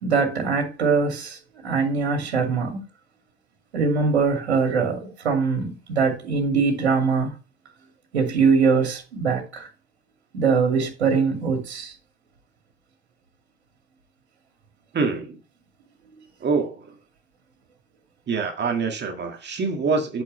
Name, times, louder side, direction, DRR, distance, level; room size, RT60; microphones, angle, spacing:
voice 1, 0.0-1.4 1.6-2.8 3.7-7.3 8.1-9.7 10.3-11.9, right 5 dB, 85° right, 2.4 m, -22 dB
voice 2, 14.9-15.4 16.4-16.9 18.3-20.2, right 4 dB, 35° right, 1.9 m, -25 dB
8.5 x 6.7 x 3.2 m
hypercardioid pair, 70°, 32 cm